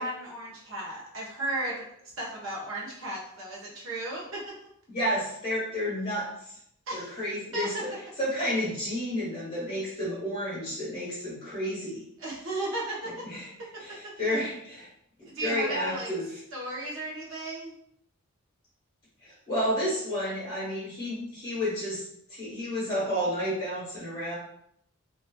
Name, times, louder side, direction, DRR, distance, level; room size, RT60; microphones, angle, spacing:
voice 1, 0.0-1.8 2.2-4.4 6.9-7.2 7.5-7.8 12.2-13.2 13.9-14.4 15.3-16.1 16.5-17.7, right 1 dB, 60° right, -4 dB, 0.9 m, -35 dB
voice 2, 4.9-6.5 6.9-7.9 8.2-12.0 13.0-13.5 13.8-14.9 15.4-16.4 19.2-22.0 22.3-24.3, equal, 30° left, -10 dB, 1.2 m, -31 dB
3.1 x 2.3 x 2.2 m, 0.72 s
head